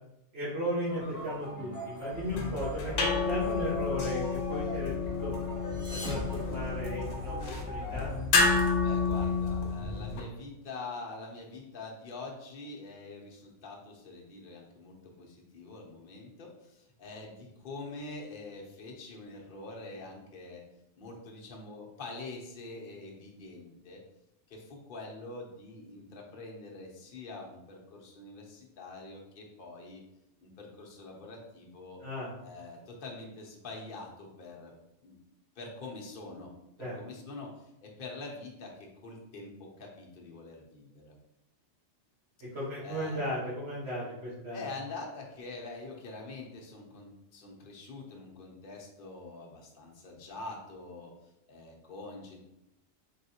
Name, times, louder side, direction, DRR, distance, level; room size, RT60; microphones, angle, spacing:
voice 1, 0.3-4.2 4.5-4.9 5.2-5.3 5.9-8.1 32.0-32.3 36.8-37.0 42.5-44.7, equal, 65° right, -9 dB, 1.6 m, -35 dB
sound 1, 0.9-8.3, equal, 20° left, 0.9 m, -42 dB
sound 2, 2.2-10.2, left 4 dB, 75° left, 1.0 m, -30 dB
sound 3, 5.6-7.4, left 2 dB, 10° right, 0.3 m, -42 dB
voice 2, 8.8-20.6 21.0-24.0 24.5-30.0 30.4-32.0 32.4-34.7 35.0-35.2 35.6-36.5 36.8-37.5 37.8-41.1 42.8-43.2 44.5-51.1 51.5-52.4, left 3 dB, 50° left, 0 dB, 0.9 m, -45 dB
3.9 x 3.5 x 2.8 m, 0.86 s
omnidirectional pair, 1.2 m